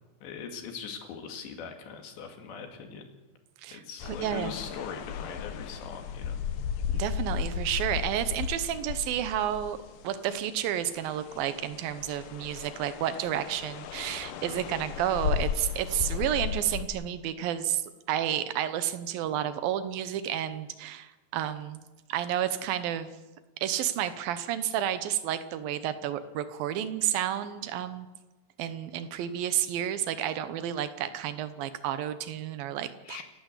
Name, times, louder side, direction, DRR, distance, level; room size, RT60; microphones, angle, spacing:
voice 1, 0.2-3.1 3.7-6.4 33.1-33.2, left 6 dB, 70° left, 4 dB, 4.3 m, -41 dB
voice 2, 3.6-4.5 6.9-9.8 10.0-17.8 18.1-21.8 22.1-23.1 23.6-28.1 28.6-33.2, right 11 dB, 75° right, 11 dB, 2.2 m, -31 dB
sound 1, 4.0-10.2 10.7-16.9, left 8 dB, 90° left, 1.8 m, -35 dB
29.0 x 12.0 x 8.2 m, 1.1 s
omnidirectional pair, 5.4 m